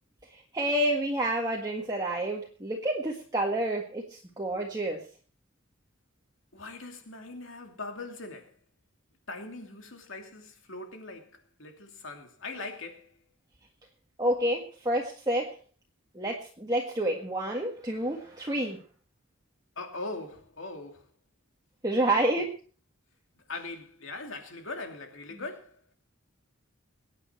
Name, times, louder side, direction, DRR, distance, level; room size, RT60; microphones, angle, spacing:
voice 1, 0.3-5.0 14.2-15.5 16.1-18.8 21.8-22.5, right 1 dB, 20° right, 1.7 m, -29 dB
voice 2, 6.5-8.5 9.3-13.1 19.8-21.1 22.2-22.5 23.5-25.8, left 3 dB, 65° left, 2.8 m, -41 dB
23.5 x 9.1 x 4.5 m
head